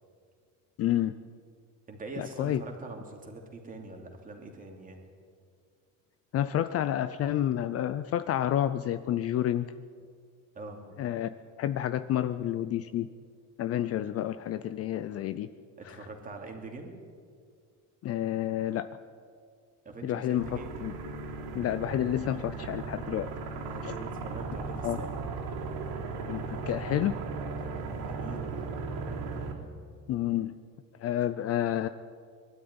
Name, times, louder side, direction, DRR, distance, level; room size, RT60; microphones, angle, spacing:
voice 1, 0.8-1.1 2.2-2.6 6.3-9.7 11.0-11.3 11.6-13.1 13.6-15.5 15.8-16.1 18.0-18.9 20.0-20.5 20.8-20.9 21.5-23.3 23.8-23.9 24.8-25.0 26.3-27.2 30.1-30.6 31.0-31.9, left 12 dB, 40° left, 12 dB, 0.5 m, -29 dB
voice 2, 1.9-5.0 10.5-10.8 15.8-17.0 19.8-20.8 23.6-25.2 27.6-28.6, right 3 dB, 20° right, 2 dB, 2.9 m, -43 dB
sound 1, 20.4-29.5, right 4 dB, 85° right, 3.6 m, -37 dB
21.5 x 12.5 x 9.6 m, 2.1 s
cardioid pair, 155°, 38 cm